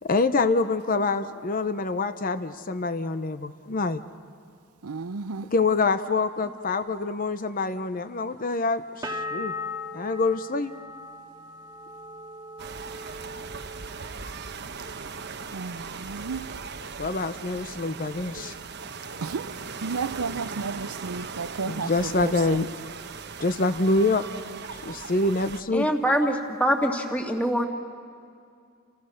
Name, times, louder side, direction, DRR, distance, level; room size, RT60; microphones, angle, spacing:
voice 1, 0.0-4.0 5.4-9.5 9.9-10.7 17.0-18.5 21.6-22.7 23.4-24.2 24.7-25.9, left 3 dB, 40° left, 0.8 m, -26 dB
voice 2, 4.8-5.5 15.5-16.5 19.2-19.5 19.8-21.9 22.2-22.6, right 4 dB, 80° right, 0.6 m, -32 dB
sound 1, 9.0-14.7 15.0-15.7, left 2 dB, 15° right, 1.2 m, -39 dB
sound 2, 12.6-25.6, right 5 dB, 50° right, 1.1 m, -39 dB
voice 3, 25.7-27.7, equal, 5° left, 2.2 m, -24 dB
30.0 x 29.5 x 6.5 m
head